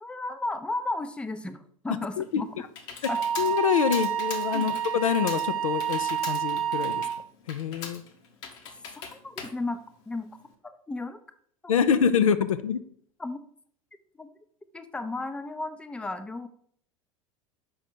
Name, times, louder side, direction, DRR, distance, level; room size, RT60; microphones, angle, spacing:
voice 1, 0.0-2.5 3.1-3.2 4.5-4.8 9.1-9.8 10.1-10.3 10.6-11.2 11.6-11.8 13.2-13.4 14.2-14.3 14.7-16.5, left 2 dB, 5° left, 11 dB, 0.5 m, -34 dB
Computer keyboard, 1.9-10.5, left 6 dB, 55° left, 1.1 m, -42 dB
voice 2, 2.2-2.7 3.4-7.0 7.5-8.0 11.7-12.8, left 7 dB, 75° left, 12 dB, 0.5 m, -26 dB
Wind instrument woodwind instrument, 3.0-7.3, right 9 dB, 85° right, 0.5 m, -29 dB
6.3 x 5.0 x 4.3 m, 0.63 s
figure-of-eight pair, 80°, 17 cm